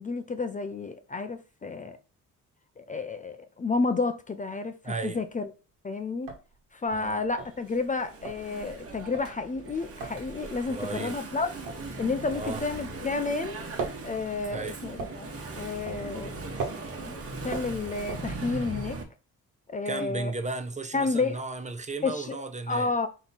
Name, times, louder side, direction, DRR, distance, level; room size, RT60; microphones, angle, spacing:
voice 1, 0.0-2.0 2.8-5.5 5.8-6.4 6.7-11.5 12.0-13.6 14.0-16.3 17.0-19.0 19.7-20.3 20.9-21.4 22.0-23.1, left 3 dB, 25° left, 0.4 m, -31 dB
voice 2, 4.8-5.2 6.9-7.2 10.7-11.2 12.3-12.6 14.5-14.8 19.8-22.9, right 3 dB, 20° right, 0.6 m, -35 dB
sound 1, 4.9-5.4 5.7-5.8 6.1-13.2 13.4-18.8, right 4 dB, 80° right, 1.3 m, -40 dB
Engine / Mechanisms, 6.9-19.0, right 3 dB, 45° right, 1.3 m, -39 dB
3.8 x 3.0 x 4.2 m
supercardioid pair, 70°, 32 cm